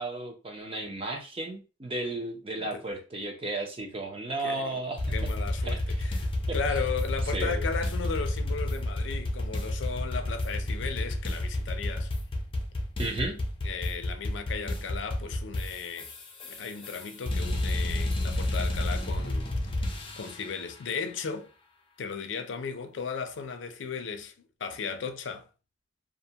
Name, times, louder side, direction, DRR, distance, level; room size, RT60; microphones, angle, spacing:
voice 1, 0.0-5.0 5.6-5.8 6.5-6.6 7.3-7.7 13.0-13.4, right 2 dB, 30° right, 0.6 m, -34 dB
voice 2, 2.5-2.8 4.4-4.8 5.1-12.1 13.6-16.1 16.4-21.5 22.0-24.3 24.6-25.5, left 5 dB, 90° left, 0.4 m, -36 dB
sound 1, 5.0-20.5, left 1 dB, 30° left, 0.5 m, -30 dB
2.5 x 2.2 x 2.7 m
head